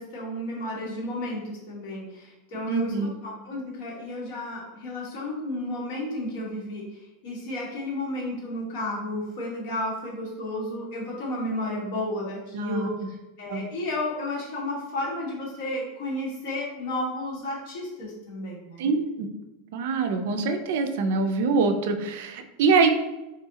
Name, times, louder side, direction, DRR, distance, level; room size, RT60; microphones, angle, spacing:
voice 1, 0.0-18.8, left 1 dB, 55° left, -4 dB, 1.4 m, -32 dB
voice 2, 2.7-3.1 12.5-12.9 13.5-13.7 18.8-19.3 19.7-22.9, right 4 dB, 65° right, 7 dB, 0.4 m, -24 dB
3.6 x 3.1 x 2.8 m, 1.0 s
supercardioid pair, 155°, 0 cm